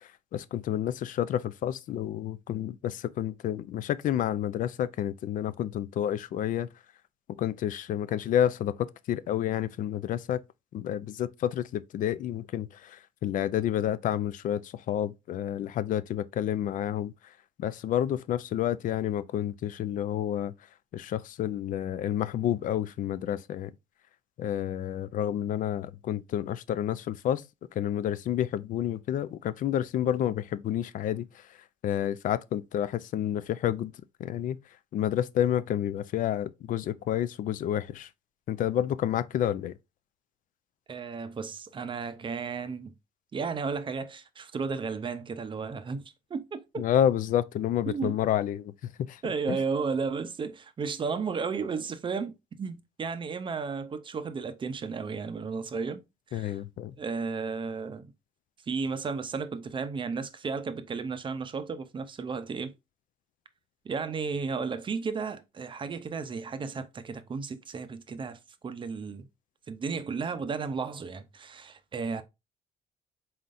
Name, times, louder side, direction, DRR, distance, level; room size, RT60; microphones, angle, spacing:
voice 1, 0.3-6.7 7.4-8.8 9.1-10.4 10.7-17.1 17.6-20.5 20.9-23.7 24.4-27.4 27.8-31.3 31.8-33.9 34.2-34.6 34.9-38.1 38.5-39.7 46.8-48.7 49.1-49.2 49.5-49.6 56.3-56.9, left 10 dB, 50° left, 0.4 m, -29 dB
voice 2, 40.9-42.9 43.3-46.0 46.3-46.8 47.9-48.2 49.2-56.0 56.3-56.6 57.0-58.1 58.7-62.7 63.8-69.3 69.7-72.2, right 5 dB, 30° right, 0.5 m, -33 dB
4.2 x 3.8 x 2.5 m
cardioid pair, 110°, 17 cm